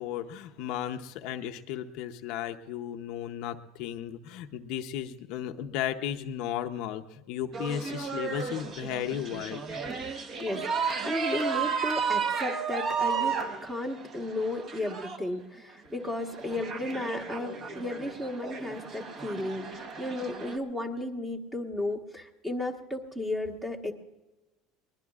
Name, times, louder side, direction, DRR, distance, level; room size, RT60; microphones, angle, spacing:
voice 1, 0.0-9.6, left 10 dB, 50° left, 6 dB, 0.7 m, -35 dB
sound 1, 7.5-15.2 16.0-20.6, right 5 dB, 30° right, 1.1 m, -33 dB
voice 2, 10.4-23.9, left 1 dB, 5° right, 4 dB, 1.2 m, -34 dB
22.5 x 20.5 x 2.4 m, 1.1 s
cardioid pair, 175°, 0 cm